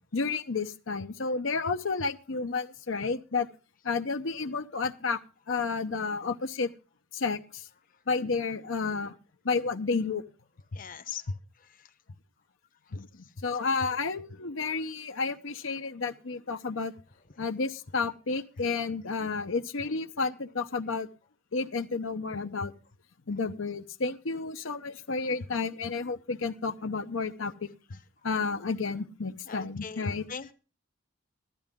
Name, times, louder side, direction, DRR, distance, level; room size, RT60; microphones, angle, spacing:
voice 1, 0.1-3.5 3.8-6.7 7.1-7.7 8.1-9.1 9.4-10.2 12.9-13.1 13.4-16.9 17.4-21.1 21.5-22.7 23.3-28.0 28.2-30.3, left 4 dB, 70° left, 7 dB, 0.8 m, -31 dB
voice 2, 10.7-11.2 29.5-30.5, left 7 dB, 40° left, 9 dB, 1.0 m, -40 dB
15.0 x 12.5 x 3.7 m, 0.35 s
head